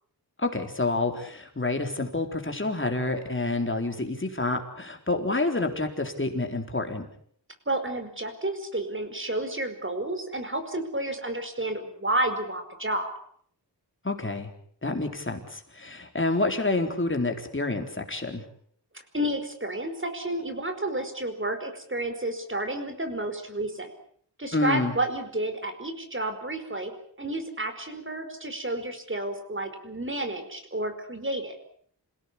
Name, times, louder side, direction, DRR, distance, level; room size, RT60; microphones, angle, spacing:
voice 1, 0.4-7.1 14.0-14.5 14.8-18.4 24.5-24.9, left 2 dB, 30° left, 4 dB, 4.1 m, -28 dB
voice 2, 7.7-13.1 19.1-23.9 24.4-26.9 27.2-31.6, right 1 dB, 30° right, 7 dB, 4.9 m, -31 dB
28.0 x 17.5 x 8.5 m, 0.62 s
wide cardioid pair, 85°, 42 cm